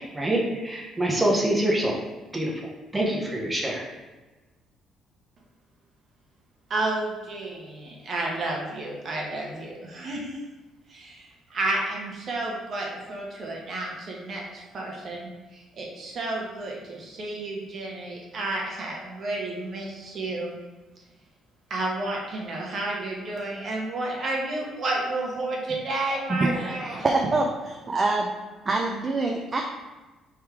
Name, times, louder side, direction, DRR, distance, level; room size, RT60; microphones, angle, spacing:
voice 1, 0.0-2.0 2.3-2.5 2.9-3.8, right 1 dB, 15° right, -3 dB, 1.0 m, -25 dB
voice 2, 6.7-10.4 10.9-20.5 21.7-27.0, right 2 dB, 50° right, -1 dB, 1.2 m, -31 dB
voice 3, 26.4-27.4 27.9-28.3 28.7-29.6, right 3 dB, 30° right, 1 dB, 0.5 m, -25 dB
3.6 x 3.1 x 4.7 m, 1.2 s
cardioid pair, 105°, 0 cm